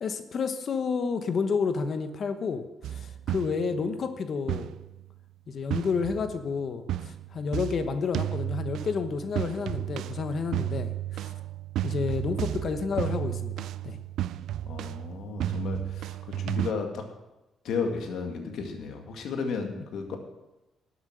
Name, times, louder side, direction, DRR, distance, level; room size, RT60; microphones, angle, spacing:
voice 1, 0.0-4.7 5.5-11.3 11.8-14.0 19.8-19.9, left 5 dB, 55° left, 9 dB, 1.0 m, -30 dB
sound 1, 2.8-3.9 4.5-5.1 5.7-6.5 6.9-16.7, right 12 dB, 80° right, 0.3 m, -33 dB
voice 2, 14.7-17.1 17.6-20.2, left 5 dB, 75° left, 3 dB, 2.1 m, -33 dB
12.5 x 8.2 x 6.3 m, 0.99 s
cardioid pair, 90°, 0 cm